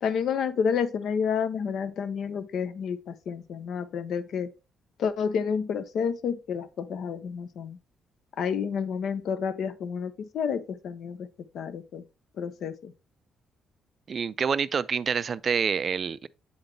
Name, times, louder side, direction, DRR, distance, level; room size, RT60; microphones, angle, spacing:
voice 1, 0.0-4.5 5.0-7.8 8.4-11.3 11.5-12.0 12.4-12.9, left 6 dB, 70° left, 0.7 m, -30 dB
voice 2, 14.1-16.3, right 6 dB, 45° right, 0.3 m, -27 dB
7.8 x 4.0 x 3.2 m
cardioid pair, 90°, 0 cm